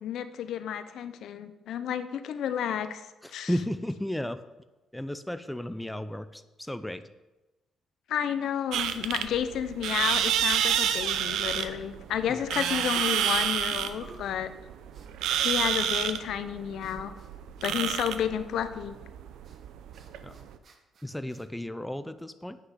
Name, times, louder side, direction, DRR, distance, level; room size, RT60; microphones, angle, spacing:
voice 1, 0.0-3.0 3.3-3.5 8.1-14.5 15.3-17.1 17.6-18.9, left 9 dB, 75° left, 11 dB, 0.7 m, -31 dB
voice 2, 3.2-4.4 4.9-7.1 12.3-12.4 20.2-20.4 21.0-22.6, left 1 dB, 5° left, 11 dB, 0.5 m, -34 dB
sound 1, 8.7-20.5, right 9 dB, 85° right, 0.6 m, -29 dB
sound 2, 12.9-14.4 14.9-15.5 15.8-16.0 16.8-17.3 17.6-17.7 19.4-19.6 19.9-21.5, right 4 dB, 50° right, 1.4 m, -53 dB
8.5 x 6.0 x 8.0 m, 1.1 s
cardioid pair, 90°, 0 cm